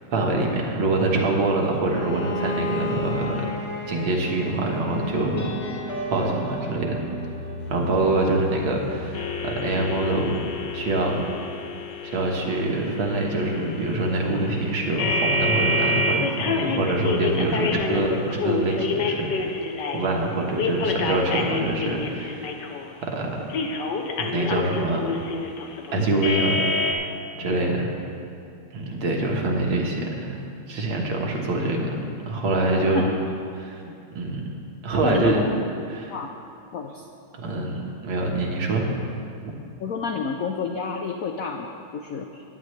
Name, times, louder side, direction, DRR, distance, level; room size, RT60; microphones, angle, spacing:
voice 1, 0.1-3.5 3.9-5.5 6.1-7.0 7.7-10.3 10.7-11.1 12.0-19.5 19.9-22.5 23.0-23.4 24.2-25.0 25.9-27.9 28.7-30.4 30.7-33.1 33.5-34.5 34.8-35.4 35.9-36.2 37.4-38.9, right 2 dB, 70° right, 0 dB, 2.2 m, -25 dB
Bowed string instrument, 1.9-6.6, left 1 dB, 45° left, 0.8 m, -32 dB
sound 1, 5.1-12.3, left 1 dB, 30° left, 1.6 m, -36 dB
sound 2, 9.1-20.1 20.6-22.9 23.5-26.9, left 3 dB, 65° left, 1.4 m, -28 dB
voice 2, 35.0-35.6 36.1-36.3 36.7-37.0 39.8-42.4, left 5 dB, 80° left, 4 dB, 0.7 m, -30 dB
17.5 x 10.5 x 3.3 m, 2.6 s
omnidirectional pair, 2.2 m